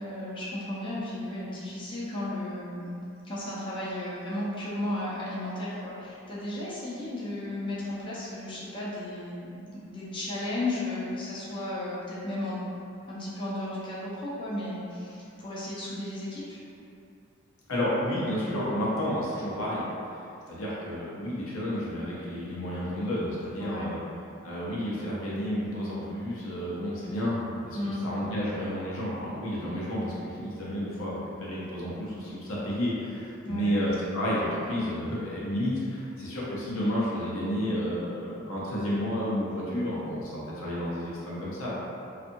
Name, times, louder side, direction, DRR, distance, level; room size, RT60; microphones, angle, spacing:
voice 1, 0.0-3.0 3.2-12.7 13.1-16.6 23.6-23.9 27.7-28.0 33.4-33.7, left 1 dB, 25° left, -8 dB, 0.5 m, -34 dB
voice 2, 17.7-19.8 20.5-24.0 24.4-41.7, equal, 85° left, -7 dB, 0.7 m, -31 dB
2.6 x 2.4 x 2.6 m, 2.6 s
head